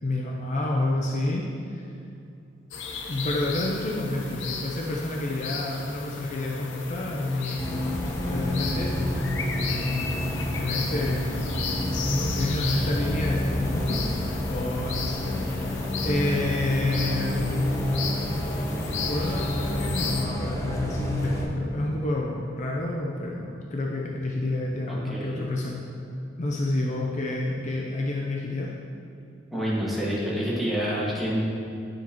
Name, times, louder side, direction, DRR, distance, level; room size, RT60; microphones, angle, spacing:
voice 1, 0.0-1.9 3.1-7.8 8.2-10.1 10.6-11.2 12.0-17.5 19.1-25.8 26.4-28.7, left 2 dB, 40° left, -2 dB, 0.6 m, -29 dB
sound 1, 2.7-20.3, left 5 dB, 90° left, 0.7 m, -36 dB
Bus, 7.6-21.4, left 1 dB, 15° left, 0.9 m, -29 dB
voice 2, 24.9-25.4 29.5-31.5, equal, ahead, -8 dB, 1.8 m, -28 dB
9.7 x 7.3 x 3.0 m, 2.6 s
head